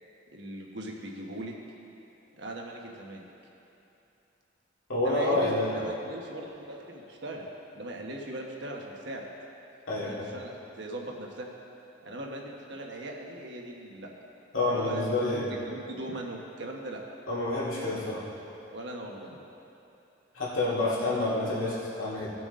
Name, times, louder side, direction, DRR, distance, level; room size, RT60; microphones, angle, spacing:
voice 1, 0.3-1.5 2.4-3.2 5.0-7.5 7.7-9.3 10.0-11.5 12.0-14.1 14.7-17.0 18.7-19.3, right 1 dB, 60° right, 0 dB, 1.2 m, -39 dB
voice 2, 4.9-5.8 9.9-10.3 14.5-15.5 17.3-18.2 20.3-22.3, left 2 dB, 90° left, -8 dB, 2.4 m, -28 dB
17.5 x 6.1 x 3.7 m, 2.9 s
head